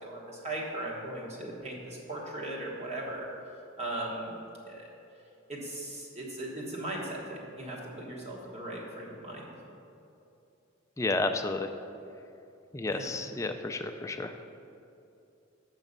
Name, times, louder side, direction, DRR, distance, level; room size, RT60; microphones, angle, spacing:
voice 1, 0.0-3.3 3.8-4.4 4.6-4.9 5.5-9.5 12.9-13.1, right 1 dB, 30° right, -3 dB, 1.4 m, -38 dB
voice 2, 11.0-11.7 12.7-14.3, left 2 dB, 15° left, 6 dB, 0.3 m, -31 dB
7.2 x 5.9 x 5.4 m, 2.7 s
head